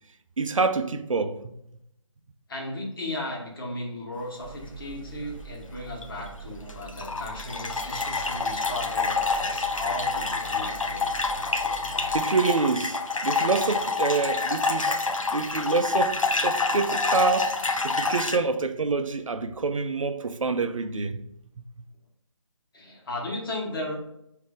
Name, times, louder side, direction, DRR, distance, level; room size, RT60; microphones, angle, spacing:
voice 1, 0.4-1.5 12.1-15.0 15.3-17.5 17.8-21.2, right 4 dB, 80° right, 0.4 m, -27 dB
voice 2, 2.5-11.0 22.7-23.9, left 1 dB, 45° left, 1.3 m, -35 dB
sound 1, 4.4-12.2, right 4 dB, ahead, 1.0 m, -43 dB
sound 2, 6.0-6.3 6.7-18.4, left 3 dB, 85° left, 0.5 m, -27 dB
4.9 x 2.7 x 3.7 m
figure-of-eight pair, 150°, 16 cm